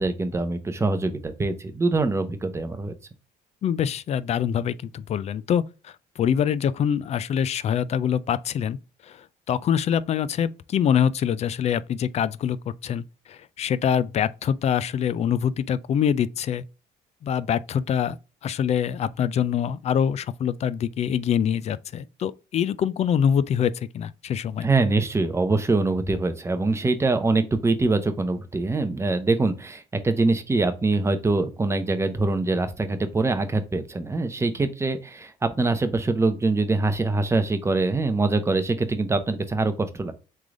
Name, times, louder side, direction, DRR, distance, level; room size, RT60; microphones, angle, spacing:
voice 1, 0.0-2.9 24.6-40.1, right 3 dB, 15° right, 0.7 m, -24 dB
voice 2, 3.6-8.8 9.0-16.6 17.2-18.2 18.4-24.7, left 8 dB, 40° left, 0.3 m, -25 dB
3.7 x 3.3 x 3.6 m
cardioid pair, 110°, 17 cm